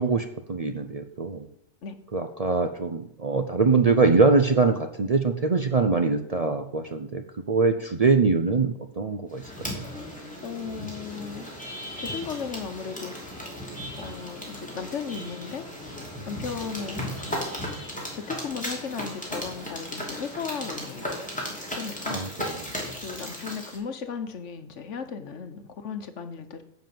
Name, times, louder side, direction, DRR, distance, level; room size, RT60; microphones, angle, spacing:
voice 1, 0.0-1.5 2.1-9.4 9.7-9.8 22.1-22.6, right 4 dB, 40° right, 7 dB, 0.6 m, -23 dB
sound 1, 9.3-23.8, equal, 5° left, 2.9 m, -36 dB
voice 2, 10.4-11.5 12.0-13.1 14.0-15.6 16.3-17.5 18.1-21.2 21.7-22.2 23.0-26.6, left 6 dB, 70° left, 9 dB, 1.3 m, -36 dB
10.5 x 5.2 x 7.7 m, 0.71 s
omnidirectional pair, 1.3 m